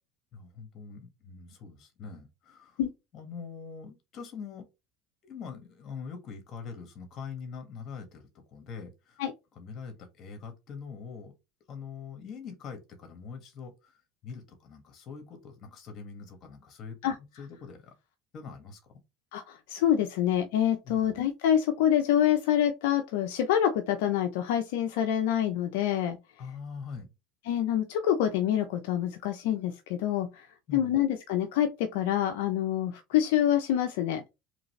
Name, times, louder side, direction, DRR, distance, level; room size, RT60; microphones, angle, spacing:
voice 1, 0.3-2.8 3.1-4.7 5.2-9.2 9.5-11.3 11.7-14.0 14.2-17.9 18.3-18.9 20.8-21.1 26.4-27.1 30.7-31.0, left 5 dB, 50° left, 1.7 m, -43 dB
voice 2, 19.3-26.2 27.5-30.5 30.7-34.2, left 10 dB, 75° left, 0.6 m, -26 dB
3.8 x 3.3 x 3.2 m
supercardioid pair, 90°, 0 cm